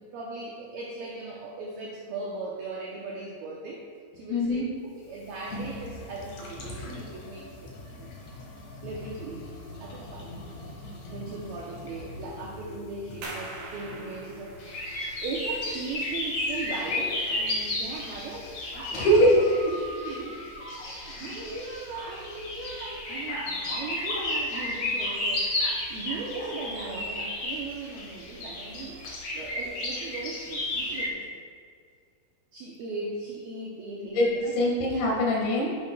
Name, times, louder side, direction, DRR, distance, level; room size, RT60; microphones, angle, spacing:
voice 1, 0.0-3.8 4.1-4.7 5.0-7.7 8.0-8.1 8.8-9.5 9.8-19.3 20.0-25.5 25.9-29.0 29.3-31.3 32.5-34.5, right 3 dB, 90° right, -3 dB, 2.1 m, -38 dB
voice 2, 4.3-4.7 18.9-19.8 21.1-21.4 34.2-34.3 34.6-35.7, equal, 75° left, -3 dB, 3.9 m, -22 dB
sound 1, 4.8-19.2, left 2 dB, 90° left, 1.5 m, -44 dB
sound 2, 13.2-18.6, right 2 dB, 50° right, 3.5 m, -45 dB
sound 3, 14.6-31.1, left 1 dB, 60° left, 1.8 m, -33 dB
10.5 x 9.3 x 2.3 m, 2.1 s
omnidirectional pair, 5.3 m